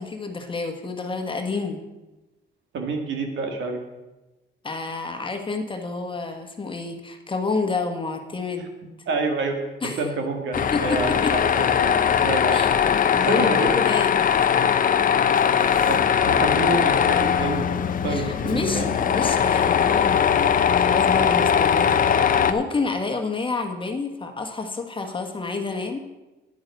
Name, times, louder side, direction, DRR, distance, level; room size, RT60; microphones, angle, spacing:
voice 1, 0.0-1.8 4.6-8.7 9.8-10.0 10.7-11.3 12.5-12.7 13.1-14.3 18.1-26.0, left 3 dB, 25° left, 5 dB, 1.3 m, -29 dB
voice 2, 2.7-3.8 8.6-8.7 9.1-9.6 9.8-12.7 13.2-13.8 15.9-18.9, right 3 dB, 70° right, 4 dB, 1.8 m, -28 dB
Tools, 10.5-22.5, left 8 dB, 45° left, 0.6 m, -20 dB
9.6 x 8.9 x 5.3 m, 1.1 s
cardioid pair, 90°, 20 cm